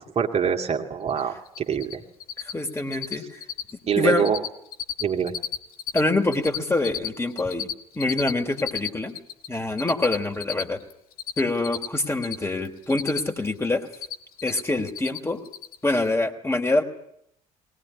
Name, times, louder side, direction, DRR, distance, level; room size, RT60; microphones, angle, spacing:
voice 1, 0.2-2.0 3.9-4.4 5.0-5.3, right 7 dB, 35° right, 2 dB, 2.3 m, -24 dB
Cricket, 1.1-1.2 1.5-1.9 2.2-2.5 2.8-3.1 3.4-3.7 4.0-4.5 4.7-6.0 6.2-9.5 9.8-12.3 12.6-13.5 13.7-14.6 14.9-15.2 15.4-15.7, left 9 dB, 75° left, 1.8 m, -32 dB
voice 2, 2.4-3.4 4.0-4.3 5.9-7.7 7.9-9.2 9.5-10.8 11.4-13.9 14.4-15.4 15.8-16.8, left 2 dB, 15° left, 6 dB, 3.2 m, -25 dB
22.5 x 18.5 x 9.9 m, 0.74 s
figure-of-eight pair, 55°, 19 cm